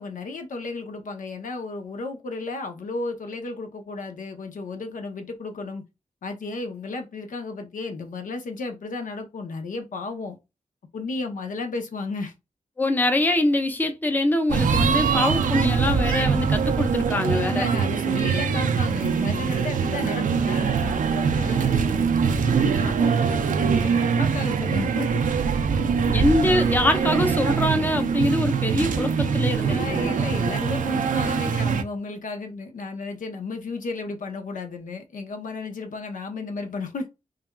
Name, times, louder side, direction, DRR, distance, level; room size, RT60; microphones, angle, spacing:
voice 1, 0.0-5.8 6.2-10.4 10.9-12.3 17.1-25.2 29.6-37.1, left 3 dB, 85° left, 0.7 m, -33 dB
voice 2, 12.8-17.7 26.0-30.1, left 1 dB, 15° left, 0.5 m, -24 dB
sound 1, 14.5-31.8, right 6 dB, 85° right, 0.4 m, -23 dB
3.2 x 2.3 x 2.2 m
wide cardioid pair, 115°, 13 cm